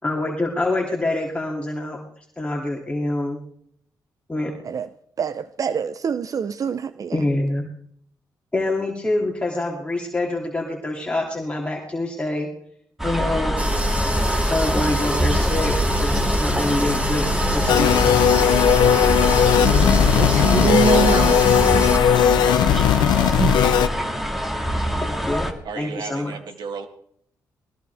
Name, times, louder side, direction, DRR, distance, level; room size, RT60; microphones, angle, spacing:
voice 1, 0.0-2.0 2.4-3.4 4.3-4.5 7.1-7.6 8.5-12.5 13.0-13.5 14.5-18.0 25.0-26.3, left 2 dB, 15° left, 2.8 m, -26 dB
voice 2, 5.2-7.2 20.2-21.6 23.4-23.6, right 6 dB, 50° right, 0.6 m, -24 dB
sound 1, 13.0-25.5, equal, 5° right, 2.2 m, -23 dB
sound 2, 13.6-22.0, right 1 dB, 20° right, 3.2 m, -27 dB
sound 3, 17.7-23.9, left 10 dB, 90° left, 0.7 m, -18 dB
voice 3, 25.6-26.9, right 5 dB, 75° right, 1.9 m, -33 dB
20.5 x 19.5 x 3.5 m
cardioid pair, 75°, 7 cm